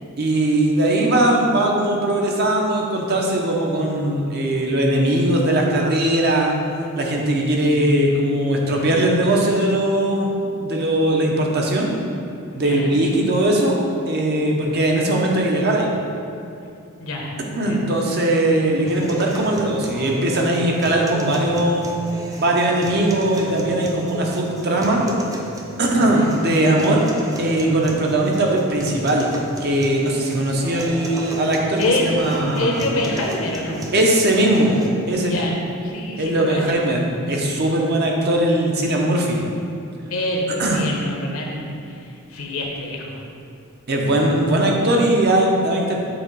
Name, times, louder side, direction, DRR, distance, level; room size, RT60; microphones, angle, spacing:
voice 1, 0.2-6.6 6.9-11.9 12.5-15.9 17.6-21.9 22.4-25.1 25.8-27.1 27.4-29.3 29.6-32.7 33.9-34.7 35.1-35.4 36.2-39.4 40.6-40.8 43.9-46.0, right 1 dB, 50° right, -1 dB, 0.8 m, -19 dB
voice 2, 12.5-13.2 17.0-17.9 26.0-26.3 31.8-33.9 35.2-36.9 40.1-43.2, left 1 dB, 70° left, 0 dB, 0.9 m, -26 dB
sound 1, 18.9-34.9, equal, 15° right, 0.5 m, -33 dB
6.9 x 3.0 x 5.4 m, 2.5 s
head